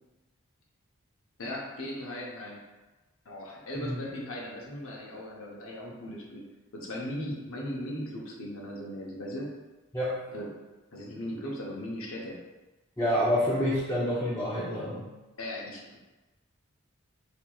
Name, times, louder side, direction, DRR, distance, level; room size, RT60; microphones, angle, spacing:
voice 1, 1.4-2.6 3.2-6.4 6.7-9.5 10.3-10.5 10.9-12.4 15.4-16.0, left 1 dB, 70° left, -2 dB, 0.8 m, -38 dB
voice 2, 13.0-15.1, equal, 15° left, -10 dB, 0.6 m, -28 dB
4.5 x 2.9 x 2.3 m, 1.1 s
head